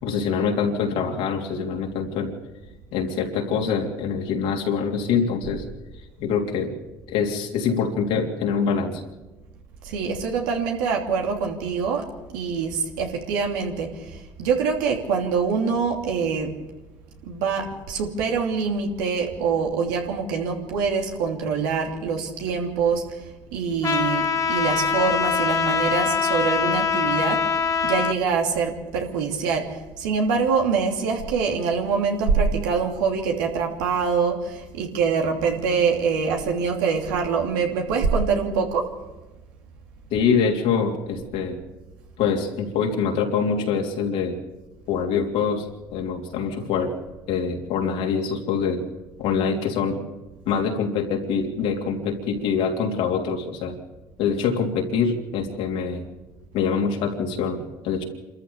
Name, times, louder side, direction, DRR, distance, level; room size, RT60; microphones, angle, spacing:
voice 1, 0.0-2.3 2.9-5.6 6.2-6.7 7.1-9.0 40.1-41.6 42.2-44.4 44.9-47.0 47.3-48.8 49.2-50.0 50.4-53.8 54.2-56.1 56.5-58.0, left 6 dB, 75° left, 1 dB, 3.4 m, -24 dB
voice 2, 9.8-12.0 12.3-13.9 14.4-16.5 17.2-23.0 23.5-27.4 27.8-29.7 30.0-38.9, right 5 dB, 85° right, 2 dB, 2.8 m, -24 dB
Trumpet, 23.8-28.2, left 6 dB, 35° left, 2.5 m, -23 dB
27.0 x 14.0 x 7.3 m, 1.1 s
hypercardioid pair, 65°, 10 cm